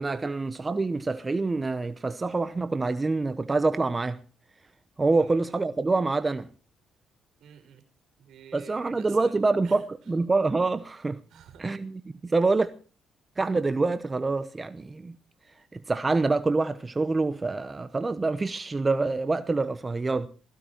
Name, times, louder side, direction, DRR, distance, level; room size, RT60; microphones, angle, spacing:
voice 1, 0.0-4.2 5.0-6.5 8.5-11.2 11.6-12.7 13.4-15.1 15.7-20.3, right 3 dB, 25° right, 0.9 m, -26 dB
voice 2, 7.4-7.8 8.2-9.4 9.6-9.8 11.3-11.7, right 8 dB, 75° right, 4.4 m, -50 dB
17.0 x 15.5 x 4.5 m
cardioid pair, 90°, 0 cm